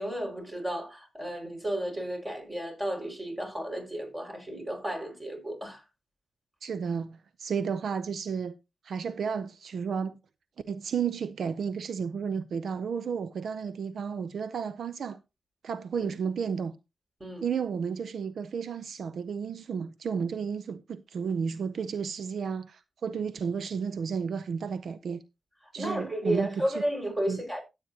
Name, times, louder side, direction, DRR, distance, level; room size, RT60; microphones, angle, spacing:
voice 1, 0.0-5.8 16.0-16.1 17.2-17.5 25.8-27.6, right 1 dB, 25° right, 5.5 m, -33 dB
voice 2, 6.6-8.5 8.8-10.2 10.7-15.2 15.6-16.7 17.4-25.2 25.7-26.8 27.3-27.4, right 6 dB, 75° right, 0.5 m, -32 dB
14.0 x 8.6 x 2.8 m
cardioid pair, 70°, 0 cm